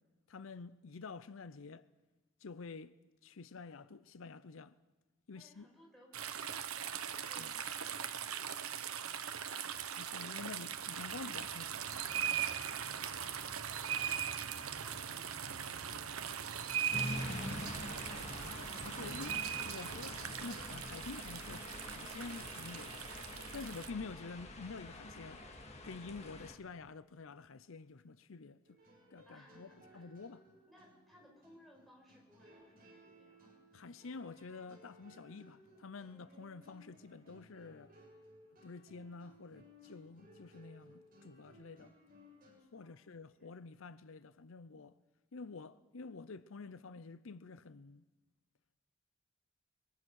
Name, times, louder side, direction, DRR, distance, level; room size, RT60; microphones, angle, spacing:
voice 1, 0.3-1.9 2.4-3.0 3.2-4.8 5.3-5.7 7.4-7.5 10.0-12.5 18.9-23.1 23.5-25.4 25.8-28.8 29.1-30.4 33.7-37.9 38.6-41.9 42.7-45.0 45.3-48.0, left 4 dB, 75° left, 0.6 m, -49 dB
voice 2, 5.3-10.3 13.7-14.2 14.5-16.5 29.2-30.1 30.7-33.6 42.7-43.5, equal, ahead, 5.3 m, -64 dB
sound 1, 6.1-23.9, right 8 dB, 90° right, 1.1 m, -40 dB
sound 2, 16.9-26.5, left 1 dB, 30° left, 1.9 m, -46 dB
sound 3, 28.6-42.6, equal, 40° right, 7.7 m, -62 dB
24.5 x 22.5 x 6.5 m
head